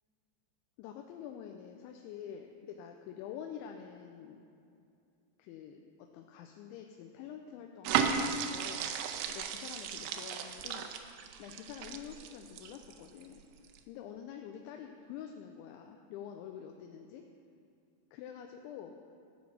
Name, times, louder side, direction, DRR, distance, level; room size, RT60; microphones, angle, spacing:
voice 1, 0.8-4.4 5.4-8.9 9.3-10.9 11.4-13.4 13.9-17.2 18.1-18.9, left 9 dB, 90° left, 3 dB, 3.0 m, -47 dB
sound 1, 7.9-13.2 13.6-13.8, right 7 dB, 85° right, 2.8 m, -35 dB
13.5 x 6.0 x 7.3 m, 2.5 s
omnidirectional pair, 5.2 m